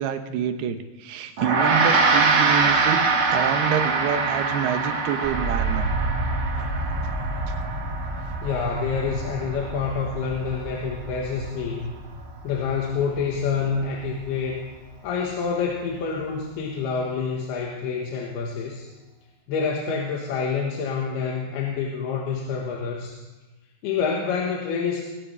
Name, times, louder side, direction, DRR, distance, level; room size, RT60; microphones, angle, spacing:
voice 1, 0.0-3.0 3.3-6.0, right 8 dB, 75° right, 8 dB, 2.8 m, -27 dB
Gong, 1.4-10.9, right 4 dB, 60° right, 1.4 m, -24 dB
sound 1, 5.2-15.2 15.5-16.2, right 2 dB, 10° right, 4.1 m, -31 dB
voice 2, 8.4-11.9 12.4-14.6 15.0-18.9 19.5-23.2 23.8-25.0, left 5 dB, 75° left, -1 dB, 3.3 m, -27 dB
22.0 x 17.5 x 3.4 m, 1.1 s
omnidirectional pair, 4.8 m